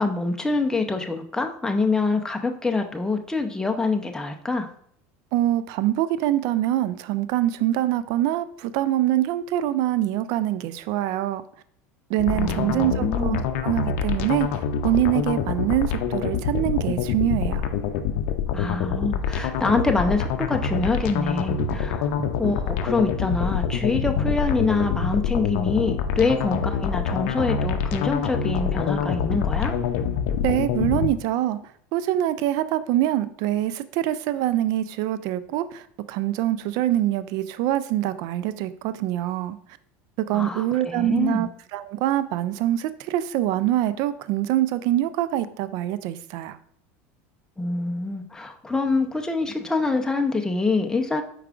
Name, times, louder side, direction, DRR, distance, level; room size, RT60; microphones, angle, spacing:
voice 1, 0.0-4.7 12.3-13.5 18.5-29.7 40.3-41.5 47.6-51.2, left 3 dB, 10° left, 4 dB, 0.6 m, -25 dB
voice 2, 5.3-11.4 12.1-17.7 30.4-31.6 31.9-39.6 40.2-46.6, right 13 dB, 60° right, 14 dB, 0.4 m, -24 dB
sound 1, 12.2-31.1, left 7 dB, 70° left, 0.5 m, -26 dB
sound 2, 21.5-22.6 22.9-23.1 23.4-23.5 24.0-24.5 24.9-25.1 25.7-25.8, right 6 dB, 30° right, 0.7 m, -37 dB
4.7 x 4.6 x 2.4 m, 0.63 s
supercardioid pair, 95°, 7 cm